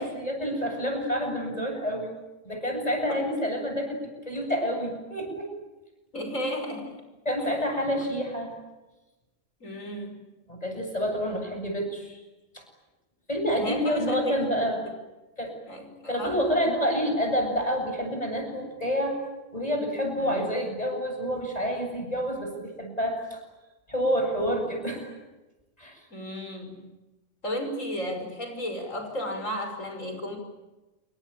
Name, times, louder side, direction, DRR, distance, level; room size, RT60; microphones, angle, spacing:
voice 1, 0.0-2.1 2.4-5.5 7.2-8.5 10.5-12.2 12.5-12.6 13.3-14.8 15.4-15.5 16.1-19.2 19.5-23.4 23.9-25.1 25.8-26.0, equal, 30° left, 3 dB, 7.7 m, -28 dB
voice 2, 6.1-7.0 7.4-7.5 8.0-8.1 9.6-10.2 13.6-14.3 15.7-16.4 20.2-20.6 26.1-26.8 27.4-30.4, equal, 80° left, 5 dB, 6.4 m, -33 dB
28.0 x 23.5 x 8.9 m, 1.1 s
omnidirectional pair, 1.3 m